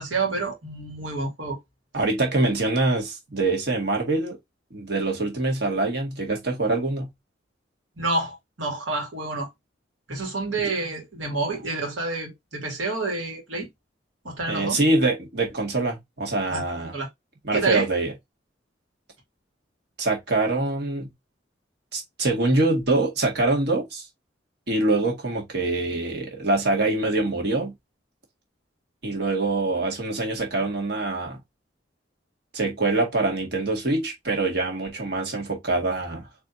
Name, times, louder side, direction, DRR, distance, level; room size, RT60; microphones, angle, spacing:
voice 1, 0.0-1.6 8.0-9.5 10.1-13.7 14.2-14.8 16.5-16.6 16.9-17.1 17.5-17.9, right 3 dB, 85° right, 2.2 m, -28 dB
voice 2, 1.9-4.4 4.7-7.1 14.5-16.9 17.4-18.1 20.0-21.1 21.9-24.1 24.7-27.7 29.0-31.4 32.5-36.3, right 2 dB, 60° right, 1.9 m, -24 dB
4.3 x 3.4 x 2.6 m
head